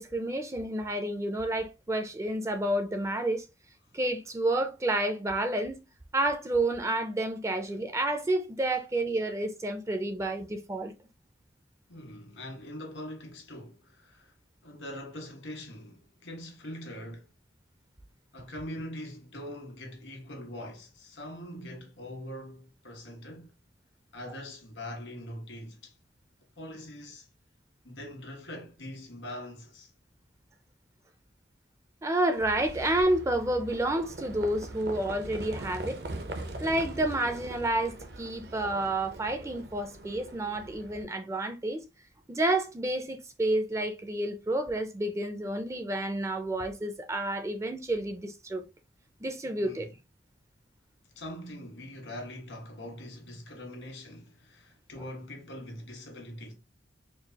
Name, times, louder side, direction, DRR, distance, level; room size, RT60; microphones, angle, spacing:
voice 1, 0.0-3.5 3.9-5.8 6.1-10.9 32.0-36.0 36.6-41.8 42.3-48.6 49.2-49.9 55.0-55.1, right 1 dB, 15° right, 0.4 m, -30 dB
voice 2, 11.9-14.3 14.6-17.3 18.3-23.5 24.1-25.9 26.6-27.3 27.8-29.9 49.6-49.9 51.1-56.5, left 1 dB, 85° left, 1.5 m, -42 dB
Livestock farm animals working animals, 32.4-41.0, right 2 dB, 55° right, 0.6 m, -41 dB
4.5 x 2.3 x 2.8 m
head